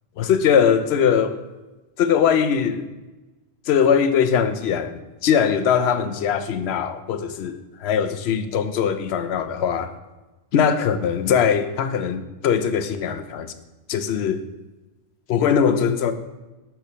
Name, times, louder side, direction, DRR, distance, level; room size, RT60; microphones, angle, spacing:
voice 1, 0.2-1.4 2.0-2.9 3.7-9.9 10.5-13.5 13.9-14.4 15.3-16.1, left 7 dB, 80° left, 10 dB, 0.8 m, -21 dB
6.8 x 4.5 x 4.9 m, 1.1 s
omnidirectional pair, 1.1 m